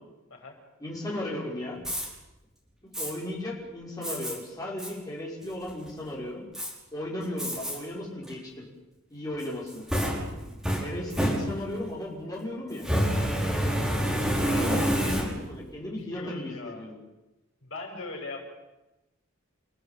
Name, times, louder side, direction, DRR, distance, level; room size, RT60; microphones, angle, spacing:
voice 1, 0.8-1.8 3.0-6.4 6.9-8.6 9.1-9.8 10.7-12.9 14.4-17.0, left 1 dB, 15° left, -4 dB, 6.2 m, -36 dB
Fire, 1.8-2.1 2.9-3.1 4.0-4.3 4.8-4.9 5.4-5.9 6.5-6.7 7.4-7.8 8.2-8.3 9.4-11.9 12.8-15.6, equal, ahead, 6.4 m, -28 dB
voice 2, 14.4-15.2 16.0-16.8 17.6-18.4, left 3 dB, 65° left, 1 dB, 7.0 m, -41 dB
29.5 x 17.0 x 9.2 m, 1.0 s
head